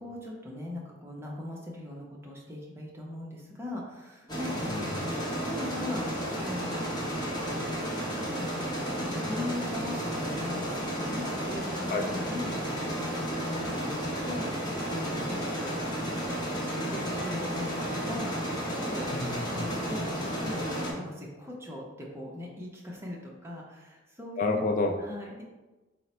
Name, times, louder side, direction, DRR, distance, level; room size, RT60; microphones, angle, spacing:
voice 1, 0.0-4.7 5.4-6.0 6.3-7.1 8.2-18.6 18.9-19.1 19.5-24.6 25.0-25.4, left 1 dB, 15° right, -2 dB, 0.7 m, -40 dB
sound 1, 4.3-20.9, equal, 20° left, 0.9 m, -32 dB
voice 2, 4.7-5.1 11.9-12.0 19.1-20.0 24.4-24.9, left 3 dB, 45° left, 3 dB, 0.3 m, -30 dB
3.8 x 2.1 x 4.3 m, 1.1 s
head